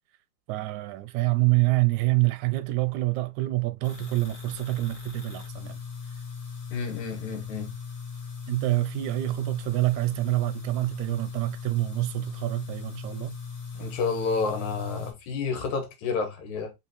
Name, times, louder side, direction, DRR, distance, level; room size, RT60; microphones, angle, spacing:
voice 1, 0.5-5.8 8.5-13.4, right 21 dB, 90° right, 2.0 m, -26 dB
sound 1, 3.8-15.1, left 5 dB, 45° left, 0.6 m, -39 dB
voice 2, 6.7-7.8 13.7-16.7, left 4 dB, 85° left, 2.8 m, -30 dB
5.6 x 3.0 x 3.1 m
omnidirectional pair, 3.3 m